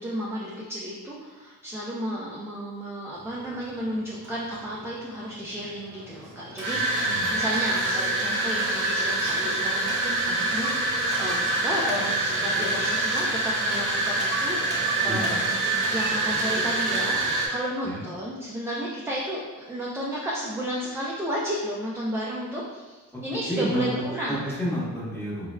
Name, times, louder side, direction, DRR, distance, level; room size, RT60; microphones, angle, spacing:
voice 1, 0.0-24.4, equal, 10° right, -5 dB, 0.3 m, -33 dB
sound 1, 3.2-3.5 4.2-4.8 5.5-17.5, right 2 dB, 80° right, 0.8 m, -26 dB
voice 2, 6.7-7.3 15.1-15.4 17.8-18.1 23.5-25.5, equal, 5° left, -7 dB, 1.0 m, -30 dB
3.5 x 2.1 x 2.2 m, 1.2 s
cardioid pair, 90°, 30 cm